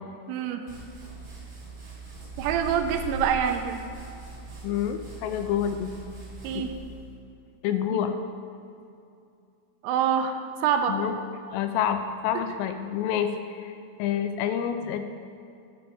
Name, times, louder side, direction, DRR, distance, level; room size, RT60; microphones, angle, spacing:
voice 1, 0.3-0.7 2.4-3.8 6.4-6.7 7.9-8.0 9.8-11.0 12.3-12.4, right 8 dB, 85° right, 7 dB, 3.1 m, -26 dB
sound 1, 0.7-7.2, right 3 dB, 25° right, 2.1 m, -43 dB
sound 2, 2.3-3.6, right 2 dB, 50° right, 3.5 m, -37 dB
voice 2, 4.6-5.9 6.6-6.7 7.6-8.2 10.9-11.1 11.5-15.1, left 9 dB, 85° left, 8 dB, 3.2 m, -28 dB
11.5 x 5.2 x 7.7 m, 2.5 s
omnidirectional pair, 5.9 m